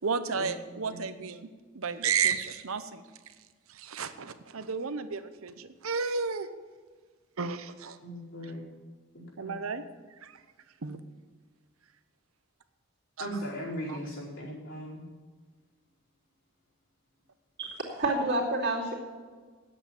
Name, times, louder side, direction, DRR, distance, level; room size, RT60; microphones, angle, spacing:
voice 1, 0.0-1.5 1.7-3.0 3.7-6.5 7.4-8.0 9.4-9.8 10.2-10.4 10.8-11.0 13.2-13.3 13.9-14.0, right 6 dB, 75° right, 11 dB, 0.8 m, -32 dB
voice 2, 8.0-8.7 9.1-9.6 13.2-15.0, equal, 65° left, -6 dB, 4.8 m, -38 dB
voice 3, 17.6-18.9, right 2 dB, 50° right, -3 dB, 2.9 m, -29 dB
9.8 x 8.3 x 8.5 m, 1.5 s
head